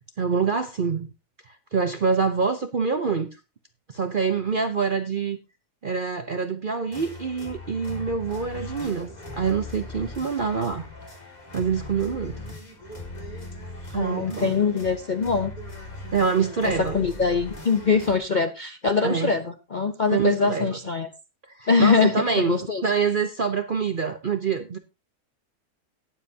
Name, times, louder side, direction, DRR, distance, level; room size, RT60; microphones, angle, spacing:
voice 1, 0.2-1.1 1.5-3.3 3.9-5.4 5.8-10.8 11.5-12.4 13.9-14.6 16.1-17.0 19.0-19.3 20.1-20.8 21.5-24.8, right 5 dB, 45° right, 0.7 m, -26 dB
sound 1, 6.9-18.2, left 1 dB, 25° left, 2.3 m, -39 dB
voice 2, 13.9-15.5 16.6-21.1 21.7-22.8, left 5 dB, 45° left, 0.6 m, -23 dB
18.0 x 7.4 x 2.8 m
omnidirectional pair, 1.7 m